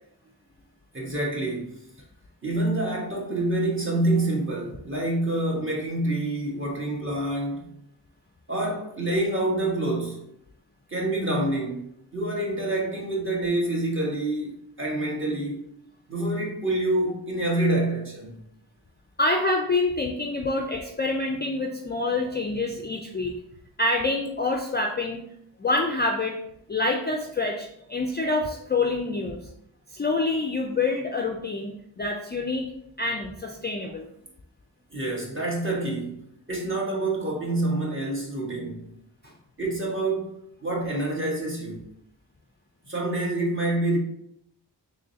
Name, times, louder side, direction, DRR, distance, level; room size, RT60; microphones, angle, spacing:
voice 1, 0.9-1.7 2.4-7.7 8.5-10.2 10.9-15.6 16.1-18.4 34.9-36.2 36.5-38.9 39.6-41.8 42.8-44.0, right 2 dB, 30° right, 1.3 m, -27 dB
voice 2, 19.2-23.4 23.8-25.2 25.6-26.4 26.7-29.4 29.9-32.7 33.0-34.1, left 2 dB, 25° left, 0.4 m, -26 dB
3.7 x 3.2 x 2.7 m
cardioid pair, 50°, 42 cm